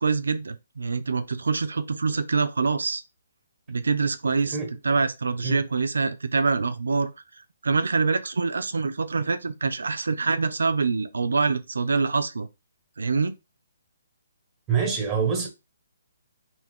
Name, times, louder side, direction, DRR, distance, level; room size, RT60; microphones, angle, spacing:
voice 1, 0.0-3.0 3.7-4.6 4.8-7.1 7.6-12.5 13.0-13.3, right 4 dB, 90° right, 0.4 m, -25 dB
voice 2, 14.7-15.5, right 6 dB, 15° right, 1.1 m, -25 dB
2.5 x 2.3 x 3.5 m
hypercardioid pair, 155°, 0 cm